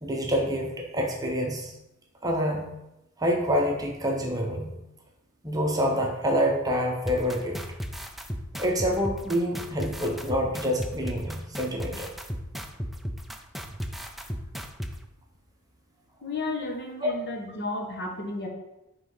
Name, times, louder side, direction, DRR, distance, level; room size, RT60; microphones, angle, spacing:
voice 1, 0.0-1.7 2.2-2.6 3.2-4.7 5.4-7.6 8.6-12.1 17.0-17.1, equal, 15° right, 0 dB, 0.8 m, -27 dB
sound 1, 7.1-14.9, equal, ahead, 0.4 m, -34 dB
voice 2, 16.2-18.5, left 2 dB, 50° left, 1 dB, 1.2 m, -33 dB
5.6 x 3.7 x 5.4 m, 0.92 s
head